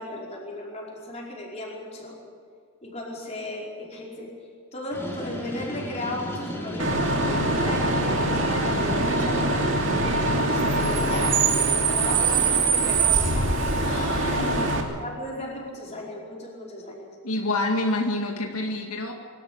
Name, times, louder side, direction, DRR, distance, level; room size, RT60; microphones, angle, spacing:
voice 1, 0.0-2.2 2.8-4.3 4.7-9.7 10.1-13.7 14.3-17.2, left 1 dB, 30° left, -3 dB, 5.0 m, -36 dB
sound 1, 4.9-10.6, equal, 10° left, 3.6 m, -34 dB
Bus / Idling / Screech, 6.8-14.8, right 3 dB, 55° right, 2.8 m, -23 dB
voice 2, 13.8-14.7 17.2-19.1, left 2 dB, 80° left, 1 dB, 2.2 m, -28 dB
24.0 x 13.0 x 8.8 m, 2.2 s
head